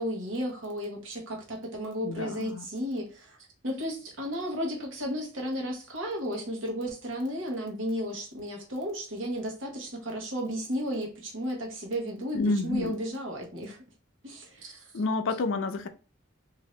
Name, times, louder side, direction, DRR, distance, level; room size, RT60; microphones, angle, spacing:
voice 1, 0.0-3.4 3.6-13.8 14.2-14.9, equal, 75° right, 1.1 m, -33 dB
voice 2, 2.0-2.7 12.3-13.0 14.9-15.9, left 3 dB, 70° left, 0.4 m, -29 dB
2.8 x 2.5 x 3.1 m
head